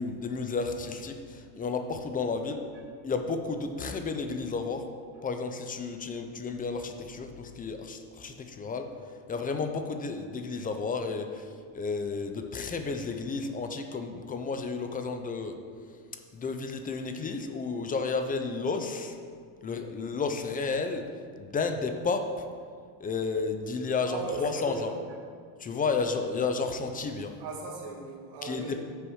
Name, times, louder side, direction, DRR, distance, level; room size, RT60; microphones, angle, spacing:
voice 1, 0.0-2.6 3.0-4.8 5.2-8.9 9.3-15.6 16.3-19.2 19.6-21.0 21.4-22.4 23.0-24.9 25.6-27.3 28.4-28.8, left 4 dB, 20° left, 6 dB, 0.4 m, -32 dB
voice 2, 24.0-25.0 27.4-28.8, right 3 dB, 55° right, -3 dB, 1.8 m, -38 dB
6.4 x 4.6 x 6.2 m, 2.1 s
cardioid pair, 120°, 49 cm